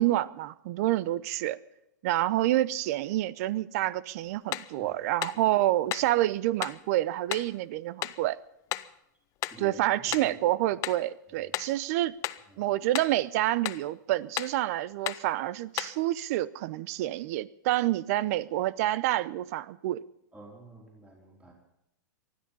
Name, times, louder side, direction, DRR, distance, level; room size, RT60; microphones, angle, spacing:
voice 1, 0.0-1.6 2.0-8.4 9.6-12.1 12.6-20.0, right 15 dB, 50° right, 0.8 m, -28 dB
sound 1, 4.5-4.8 5.2-5.4 5.9-6.2 6.6-6.8 7.3-7.5 8.0-8.2 8.7-9.0 9.4-9.7 10.1-10.4 10.8-11.1 11.5-11.8 12.2-12.5 12.9-13.2 13.7-13.9 14.4-14.6 15.1-15.3 15.8-16.0, left 16 dB, 35° left, 0.7 m, -34 dB
voice 2, 10.1-10.4 11.3-11.5 12.5-12.6 20.3-21.5, right 1 dB, 10° right, 4.3 m, -49 dB
19.5 x 13.5 x 5.5 m
hypercardioid pair, 130°, 10 cm